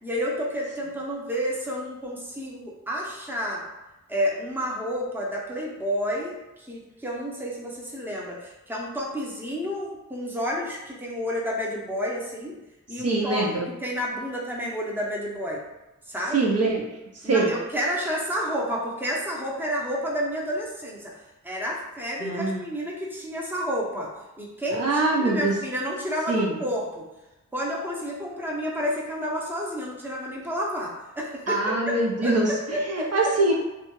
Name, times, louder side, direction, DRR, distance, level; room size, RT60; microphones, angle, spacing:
voice 1, 0.0-3.6 4.1-12.5 12.9-13.5 13.8-15.6 16.1-16.5 17.2-21.1 21.4-24.1 24.4-24.8 25.2-27.0 27.5-31.9 32.2-33.3, equal, 5° right, -4 dB, 0.6 m, -30 dB
voice 2, 13.0-13.7 16.3-16.9 17.2-17.5 22.2-22.6 24.7-25.5 26.3-26.6 31.5-33.5, right 2 dB, 55° right, -2 dB, 0.5 m, -24 dB
2.7 x 2.2 x 2.9 m, 1.0 s
wide cardioid pair, 85°, 30 cm